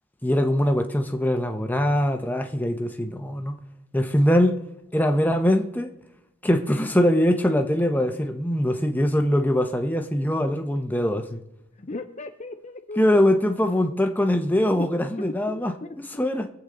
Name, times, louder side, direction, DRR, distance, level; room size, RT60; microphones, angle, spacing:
voice 1, 0.2-3.5 3.9-4.6 4.9-5.9 6.4-11.4 13.0-16.5, left 1 dB, 10° left, 0.9 m, -22 dB
voice 2, 11.8-13.0 14.9-16.0, left 2 dB, 30° left, 0.6 m, -37 dB
24.0 x 8.1 x 3.9 m
head